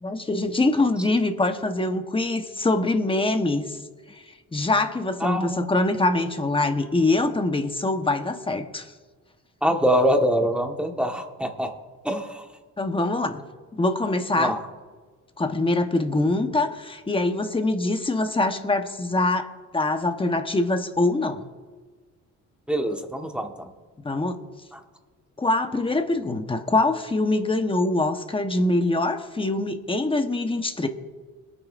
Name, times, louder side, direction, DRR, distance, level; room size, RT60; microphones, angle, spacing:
voice 1, 0.0-3.8 4.1-4.2 4.5-8.9 12.8-13.4 13.7-14.5 15.4-21.5 24.0-24.4 25.4-30.9, left 2 dB, 15° left, 7 dB, 1.0 m, -24 dB
voice 2, 5.2-5.7 9.6-11.8 12.0-12.5 14.4-14.6 22.7-23.7 24.7-24.8, equal, 5° right, 3 dB, 1.4 m, -24 dB
21.5 x 9.3 x 2.5 m, 1.4 s
cardioid pair, 90°, 30 cm